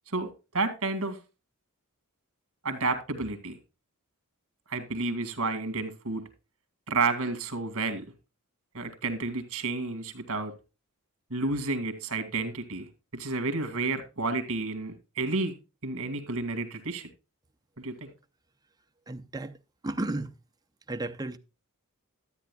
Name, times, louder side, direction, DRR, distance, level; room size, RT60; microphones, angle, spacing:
voice 1, 0.1-1.2 2.6-3.6 4.7-6.2 6.9-8.0 8.7-10.5 11.3-15.6 15.8-17.1 17.8-18.1, right 3 dB, 65° right, 2.1 m, -31 dB
voice 2, 19.1-19.6 19.8-20.3 20.9-21.4, right 2 dB, 15° right, 0.6 m, -33 dB
13.0 x 9.0 x 2.3 m
head